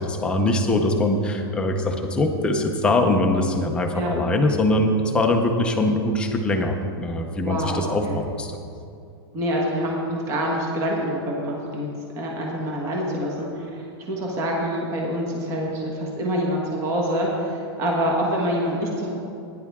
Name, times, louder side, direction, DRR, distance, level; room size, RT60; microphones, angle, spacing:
voice 1, 0.0-8.5, left 2 dB, 5° left, 3 dB, 0.6 m, -22 dB
voice 2, 7.4-8.2 9.3-11.9 12.2-19.1, equal, 20° right, -1 dB, 1.4 m, -26 dB
15.5 x 10.0 x 3.6 m, 2.5 s
supercardioid pair, 175°, 13 cm